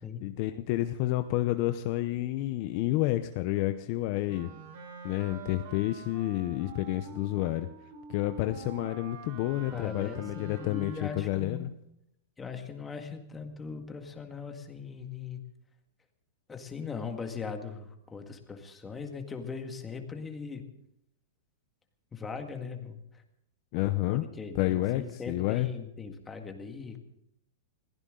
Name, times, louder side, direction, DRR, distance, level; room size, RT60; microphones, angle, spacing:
voice 1, 0.2-4.5 5.0-7.7 8.1-11.7 23.7-24.2 24.5-25.7, left 15 dB, 40° left, 9 dB, 0.7 m, -30 dB
Wind instrument woodwind instrument, 4.2-11.5, right 4 dB, 55° right, 4.3 m, -46 dB
voice 2, 9.7-11.7 12.4-15.4 16.5-20.6 22.1-23.2 24.1-27.0, left 5 dB, 10° left, 5 dB, 1.9 m, -40 dB
21.5 x 16.0 x 3.9 m, 0.80 s
supercardioid pair, 155°, 0 cm